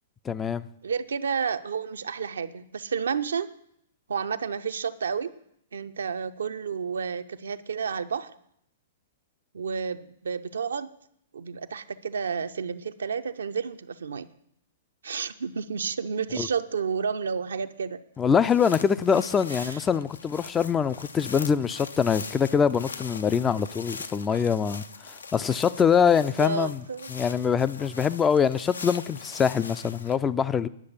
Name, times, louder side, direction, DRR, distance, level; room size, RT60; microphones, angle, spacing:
voice 1, 0.3-0.6 16.4-16.5 18.2-24.8 25.3-26.8 27.1-30.7, left 7 dB, 15° left, 14 dB, 0.4 m, -24 dB
voice 2, 0.8-3.5 4.1-5.3 5.7-8.3 9.5-10.9 11.3-14.3 15.0-18.0 19.5-19.8 26.2-27.1, right 6 dB, 70° right, 10 dB, 0.5 m, -31 dB
sound 1, 18.2-30.2, left 4 dB, 75° left, 0.6 m, -42 dB
9.7 x 6.4 x 7.1 m, 0.73 s
figure-of-eight pair, 110°, 0 cm